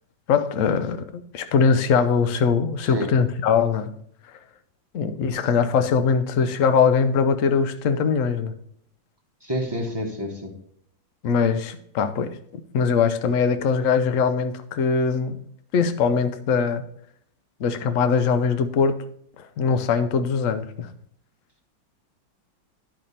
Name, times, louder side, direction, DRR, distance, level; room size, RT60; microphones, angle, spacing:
voice 1, 0.3-3.9 4.9-8.5 11.2-15.4 15.7-16.8 17.6-19.0 19.4-20.9, left 6 dB, 60° left, 10 dB, 0.8 m, -22 dB
voice 2, 9.4-10.5, equal, 15° right, 0 dB, 1.1 m, -29 dB
10.5 x 5.9 x 4.1 m, 0.66 s
omnidirectional pair, 2.1 m